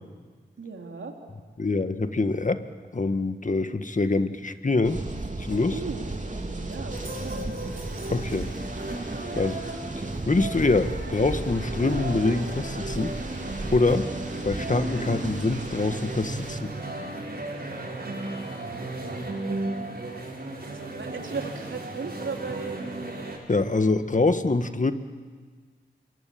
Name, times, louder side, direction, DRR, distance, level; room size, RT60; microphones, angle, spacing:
voice 1, 0.6-1.1 5.7-7.5 20.7-23.0, right 4 dB, 75° right, 2 dB, 3.3 m, -36 dB
voice 2, 1.6-2.6 2.9-5.0 5.4-5.8 8.1-8.5 9.3-9.6 10.0-13.1 13.7-14.1 14.4-16.7 23.5-24.9, left 3 dB, 40° left, 9 dB, 1.7 m, -25 dB
sound 1, 4.8-16.6, right 2 dB, 40° right, 3.0 m, -35 dB
sound 2, 6.9-23.4, right 2 dB, 55° right, 7.3 m, -35 dB
27.5 x 22.5 x 8.8 m, 1.5 s
cardioid pair, 45°, 20 cm